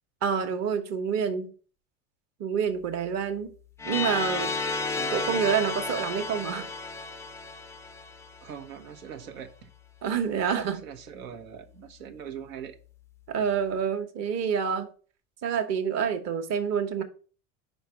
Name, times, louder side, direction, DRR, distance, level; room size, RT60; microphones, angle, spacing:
voice 1, 0.2-1.5 2.4-3.5 3.8-4.5 5.1-6.7 10.0-10.8 13.3-14.9 15.4-17.0, right 7 dB, 40° right, 1.2 m, -27 dB
sound 1, 3.8-8.6, left 3 dB, 10° left, 0.3 m, -32 dB
voice 2, 4.9-5.4 8.4-9.7 10.8-12.8, right 8 dB, 90° right, 1.2 m, -42 dB
5.4 x 4.4 x 5.8 m
supercardioid pair, 120°, 40 cm